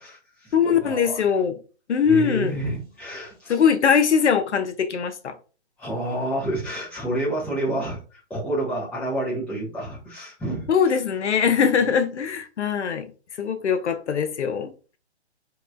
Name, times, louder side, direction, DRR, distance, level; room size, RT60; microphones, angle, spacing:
voice 1, 0.0-1.2 2.1-3.6 5.8-10.7, right 1 dB, 5° left, 1.1 m, -29 dB
voice 2, 0.5-1.6 1.9-2.6 3.5-5.4 10.7-13.1 13.4-14.7, left 7 dB, 90° left, 0.6 m, -21 dB
3.0 x 2.9 x 2.4 m
hypercardioid pair, 145°, 34 cm